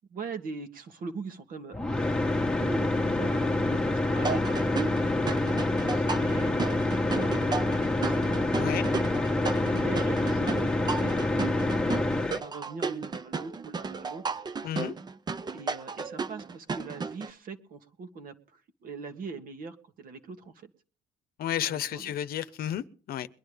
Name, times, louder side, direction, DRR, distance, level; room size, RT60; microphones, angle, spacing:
voice 1, 0.1-1.8 2.1-5.3 5.7-8.2 9.6-11.5 12.2-14.2 15.5-20.7 21.5-22.2, right 4 dB, 55° right, 1.8 m, -41 dB
sound 1, 1.7-12.4, left 2 dB, 5° left, 1.3 m, -27 dB
sound 2, 4.2-17.3, right 5 dB, 25° right, 0.6 m, -34 dB
voice 2, 14.6-14.9 21.4-23.3, left 11 dB, 60° left, 0.8 m, -32 dB
22.5 x 10.5 x 3.5 m
cardioid pair, 110°, 17 cm